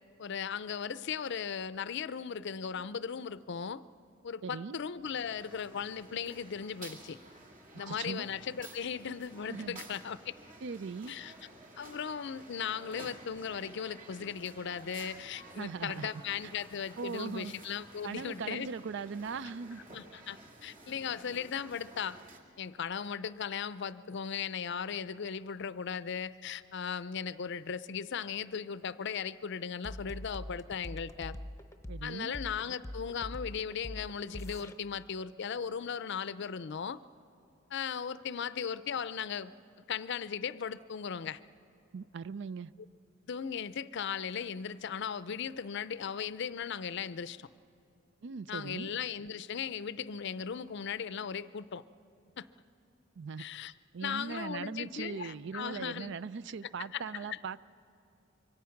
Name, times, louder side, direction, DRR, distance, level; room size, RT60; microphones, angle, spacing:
voice 1, 0.2-3.8 4.2-7.2 7.8-10.4 11.1-11.3 11.8-18.7 19.9-22.2 22.6-31.4 32.0-37.0 37.7-39.5 39.9-41.4 43.3-47.5 48.5-51.8 52.4-52.5 53.4-53.7 54.0-56.2 56.8-57.4, left 7 dB, 60° left, 16 dB, 0.5 m, -37 dB
voice 2, 4.4-4.8 7.9-8.3 9.5-9.8 10.6-11.2 15.6-16.1 17.0-17.5 18.0-19.8 31.9-32.4 41.9-42.7 48.2-48.9 53.2-53.4 53.9-57.6, right 5 dB, 65° right, 18 dB, 0.4 m, -39 dB
sound 1, 5.0-22.4, right 2 dB, 45° right, 2.2 m, -52 dB
sound 2, 29.8-34.7, left 1 dB, 15° left, 0.8 m, -43 dB
25.5 x 23.5 x 5.8 m, 2.6 s
head